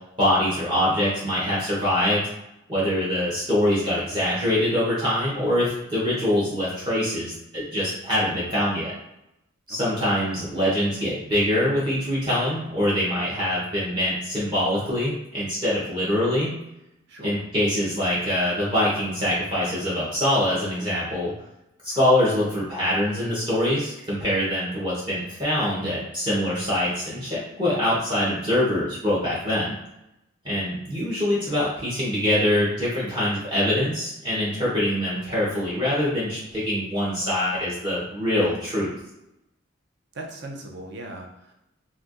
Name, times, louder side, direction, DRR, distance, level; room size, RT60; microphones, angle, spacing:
voice 1, 0.2-2.2 2.7-8.9 9.7-16.5 17.2-21.3 21.8-29.8 30.4-38.9, left 1 dB, 25° right, -8 dB, 0.9 m, -24 dB
voice 2, 17.1-17.4 40.1-41.5, right 2 dB, 55° right, 2 dB, 0.6 m, -39 dB
4.3 x 2.3 x 2.5 m, 0.87 s
head